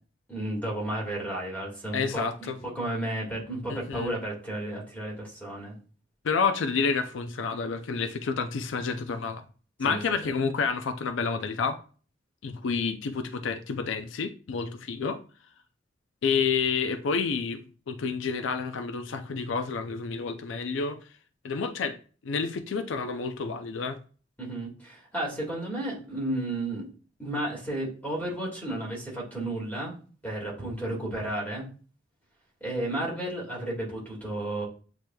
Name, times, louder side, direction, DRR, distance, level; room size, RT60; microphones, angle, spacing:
voice 1, 0.3-5.8 9.8-10.3 24.4-26.8 27.2-29.9 30.2-31.7 32.6-34.7, right 1 dB, 10° left, 1.8 m, -33 dB
voice 2, 1.9-2.6 3.7-4.1 6.2-9.4 9.8-11.8 12.4-15.2 16.2-17.6 17.9-21.0 21.4-22.0 22.2-24.0, left 5 dB, 85° left, 0.4 m, -29 dB
8.0 x 2.9 x 2.2 m
head